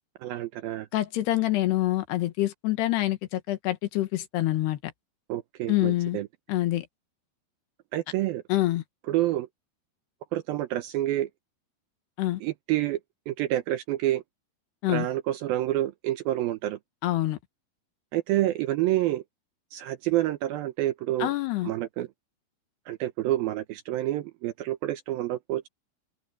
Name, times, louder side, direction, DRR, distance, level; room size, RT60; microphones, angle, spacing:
voice 1, 0.2-0.9 5.3-6.3 7.9-8.4 9.1-9.5 10.3-11.3 12.4-13.0 13.3-14.2 14.9-16.8 18.1-19.2 19.7-21.3 21.6-22.1 22.9-25.7, right 14 dB, 80° right, 2.2 m, -28 dB
voice 2, 0.9-4.8 5.7-6.2 6.5-6.9 8.5-8.8 12.2-12.4 14.8-15.1 17.0-17.4 21.2-21.7, left 16 dB, 75° left, 3.4 m, -26 dB
omnidirectional pair, 4.9 m